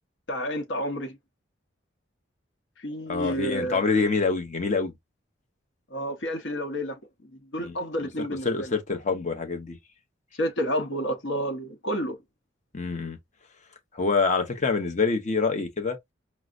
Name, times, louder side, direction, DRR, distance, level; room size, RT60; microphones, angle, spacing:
voice 1, 0.3-1.2 2.8-3.8 5.9-8.7 10.4-12.2, equal, 70° left, 0.9 m, -30 dB
voice 2, 3.1-4.9 7.6-7.8 8.2-9.8 12.7-13.2 13.9-16.0, left 4 dB, 40° left, 0.8 m, -26 dB
4.6 x 2.1 x 2.5 m
head